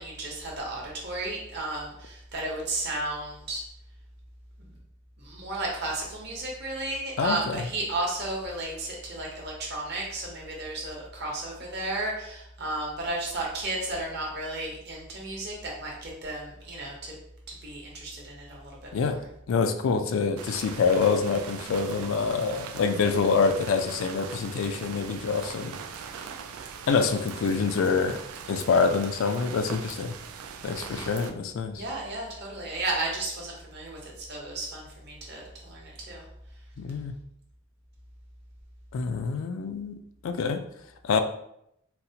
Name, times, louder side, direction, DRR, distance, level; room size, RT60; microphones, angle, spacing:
voice 1, 0.0-3.6 4.6-4.7 5.2-17.1 17.6-19.2 30.7-31.1 31.7-36.2, right 2 dB, 50° right, -2 dB, 0.9 m, -33 dB
voice 2, 7.2-7.7 18.9-19.2 19.5-25.8 26.9-28.2 28.5-30.1 30.6-31.8 36.8-37.2 38.9-40.6 41.0-41.2, left 5 dB, 70° left, 8 dB, 0.3 m, -26 dB
sound 1, 20.4-31.3, right 6 dB, 90° right, 0.4 m, -41 dB
4.0 x 2.1 x 2.7 m, 0.76 s
head